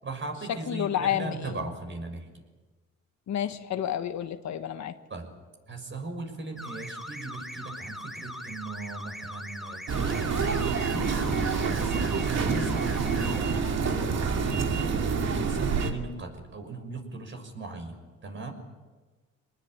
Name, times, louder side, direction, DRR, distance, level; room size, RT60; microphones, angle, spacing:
voice 1, 0.0-2.3 5.1-5.3 5.7-10.9 11.1-18.5, right 3 dB, 40° right, 5 dB, 6.2 m, -39 dB
voice 2, 0.7-1.6 3.3-4.9, left 10 dB, 65° left, 9 dB, 1.5 m, -30 dB
sound 1, 6.6-13.4, equal, ahead, 2.2 m, -41 dB
sound 2, 9.9-15.9, right 5 dB, 60° right, 2.6 m, -27 dB
25.5 x 20.0 x 8.9 m, 1.3 s
cardioid pair, 90°, 30 cm